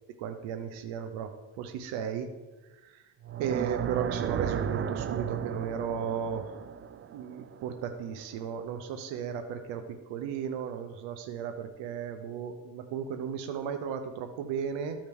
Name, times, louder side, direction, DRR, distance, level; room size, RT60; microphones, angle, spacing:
voice 1, 0.2-1.3 1.6-2.3 2.8-2.9 3.4-6.6 7.1-9.8 10.1-15.0, right 7 dB, 90° right, 7 dB, 0.8 m, -35 dB
sound 1, 3.2-8.3, right 8 dB, 30° right, 0.4 m, -34 dB
13.0 x 5.0 x 3.5 m, 1.2 s
cardioid pair, 95°, 44 cm